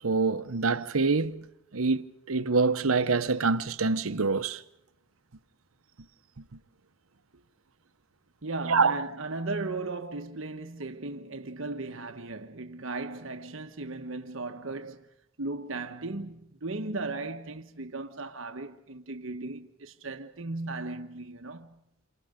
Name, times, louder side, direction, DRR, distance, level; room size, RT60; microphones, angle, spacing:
voice 1, 0.0-1.4 1.7-4.6 8.7-8.9, right 4 dB, 85° right, 1.0 m, -25 dB
voice 2, 8.4-15.1 15.4-21.7, right 3 dB, 70° right, 1.2 m, -36 dB
29.0 x 26.5 x 5.2 m
head